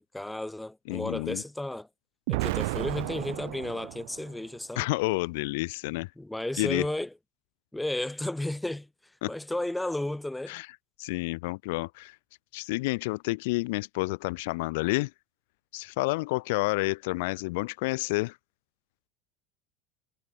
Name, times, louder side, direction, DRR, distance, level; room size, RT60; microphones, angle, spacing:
voice 1, 0.0-1.9 2.3-4.8 6.2-7.1 7.7-8.9 9.3-10.6, left 1 dB, 5° left, 4.8 m, -33 dB
voice 2, 0.9-1.4 4.8-6.1 6.6-6.9 9.2-9.3 10.5-10.7 11.0-12.2 12.5-15.1 15.7-18.4, left 23 dB, 70° left, 1.9 m, -29 dB
Explosion, 2.3-4.4, right 24 dB, 70° right, 1.1 m, -32 dB
cardioid pair, 175°, 0 cm